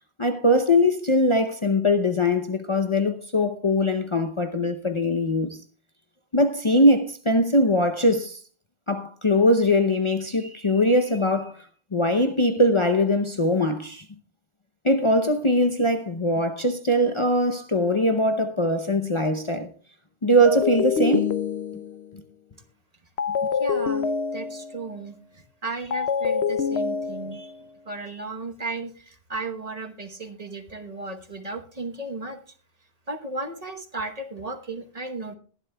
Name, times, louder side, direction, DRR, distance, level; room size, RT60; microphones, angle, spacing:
voice 1, 0.2-5.6 6.3-8.4 8.9-11.7 11.9-14.0 14.8-19.7 20.2-21.3 22.1-22.2, left 1 dB, 30° left, 0.7 m, -21 dB
sound 1, 20.5-22.1 23.2-24.9 25.9-27.6, left 6 dB, 75° left, 1.0 m, -26 dB
voice 2, 23.6-27.6 27.8-32.4 33.1-35.4, right 3 dB, 35° right, 1.1 m, -35 dB
21.0 x 11.5 x 2.3 m
omnidirectional pair, 1.1 m